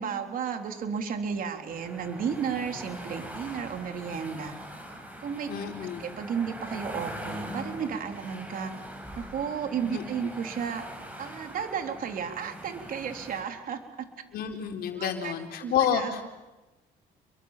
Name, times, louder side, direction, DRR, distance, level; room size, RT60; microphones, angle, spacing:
voice 1, 0.0-4.6 5.2-5.5 6.0-8.7 9.2-10.8 11.2-14.1 14.9-15.3 15.6-16.1, right 7 dB, 55° right, 5 dB, 3.6 m, -33 dB
sound 1, 1.7-13.4, equal, 10° right, 6.7 m, -42 dB
voice 2, 5.5-6.0 9.9-10.0 14.3-16.2, left 8 dB, 65° left, 3 dB, 4.2 m, -29 dB
29.0 x 23.0 x 7.5 m, 1.1 s
cardioid pair, 110°, 17 cm